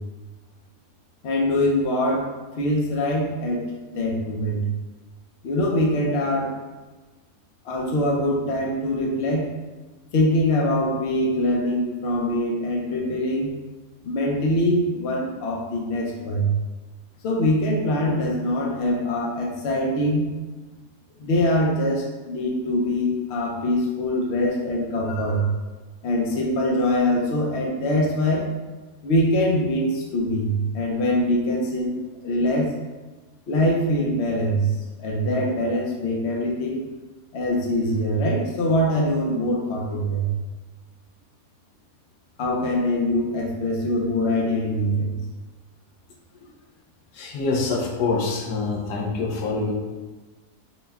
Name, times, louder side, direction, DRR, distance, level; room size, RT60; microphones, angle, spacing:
voice 1, 1.2-2.3 2.6-3.7 3.9-4.6 5.4-6.5 7.6-9.4 10.1-13.5 14.0-16.5 17.2-20.3 21.2-25.4 26.0-28.5 29.0-31.9 32.2-32.7 33.5-34.7 35.0-36.8 37.3-40.3 42.4-45.1, left 1 dB, 55° left, -2 dB, 0.8 m, -23 dB
voice 2, 47.1-49.7, left 3 dB, 90° left, 0 dB, 1.2 m, -25 dB
4.3 x 2.2 x 3.4 m, 1.2 s
omnidirectional pair, 1.7 m